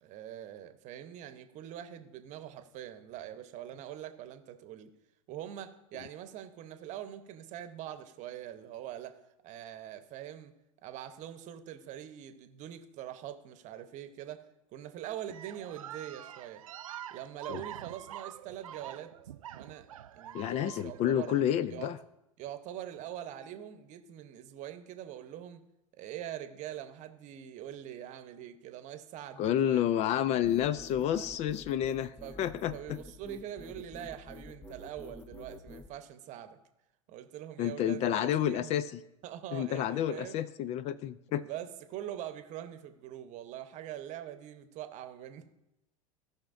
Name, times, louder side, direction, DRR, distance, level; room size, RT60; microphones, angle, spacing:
voice 1, 0.0-4.9 5.3-9.2 9.4-10.5 10.8-16.6 17.1-19.1 19.5-19.9 20.1-21.3 21.7-21.9 22.4-25.6 25.9-29.8 31.0-31.3 32.2-32.4 32.7-36.6 37.1-38.8 39.2-40.4 41.4-45.5, right 11 dB, 45° right, 9 dB, 0.9 m, -43 dB
sound 1, 15.3-21.4, right 11 dB, 75° right, 0.4 m, -46 dB
voice 2, 20.3-22.0 29.4-33.0 37.6-38.9 39.5-41.4, left 10 dB, 40° left, 16 dB, 0.4 m, -30 dB
sound 2, 30.4-35.9, left 2 dB, 10° left, 0.7 m, -48 dB
17.0 x 5.8 x 2.6 m, 0.89 s
hypercardioid pair, 85°, 18 cm